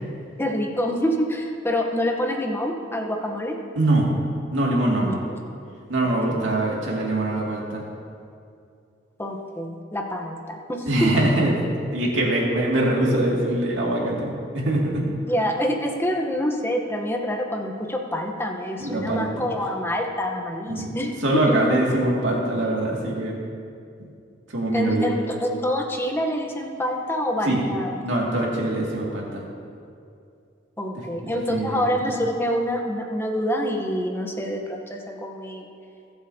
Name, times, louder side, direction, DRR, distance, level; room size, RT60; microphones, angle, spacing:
voice 1, 0.4-3.6 5.0-5.1 6.3-6.5 9.2-11.1 15.3-21.6 24.7-28.0 30.8-35.7, equal, 10° left, 2 dB, 0.9 m, -26 dB
voice 2, 3.8-4.1 4.5-5.1 5.9-7.8 10.9-11.6 11.9-15.1 18.8-19.5 20.7-20.9 21.2-23.4 24.5-25.1 27.4-27.6 28.0-29.4 30.9-31.9, right 1 dB, 75° right, -3 dB, 2.3 m, -23 dB
21.5 x 7.9 x 2.8 m, 2.5 s
head